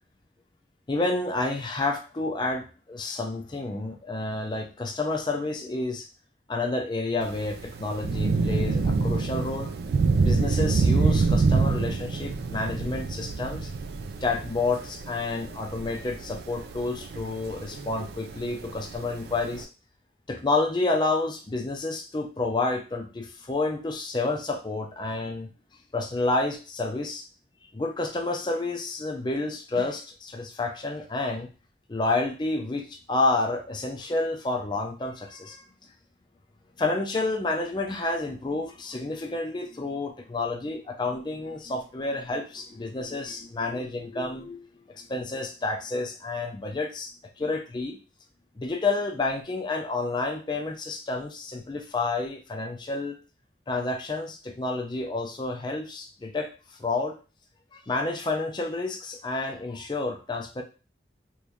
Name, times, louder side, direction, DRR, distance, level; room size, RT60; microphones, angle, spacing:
voice 1, 0.9-6.1 6.5-9.7 10.2-13.7 14.2-19.7 20.3-25.5 25.9-27.3 27.7-31.5 31.9-35.6 36.8-44.7 45.0-48.0 48.6-53.2 53.7-56.5 56.8-57.2 57.7-60.6, left 2 dB, 25° left, 3 dB, 0.4 m, -29 dB
Thunder / Rain, 7.2-19.6, right 4 dB, 60° right, 0.3 m, -27 dB
3.0 x 2.6 x 3.5 m, 0.34 s
head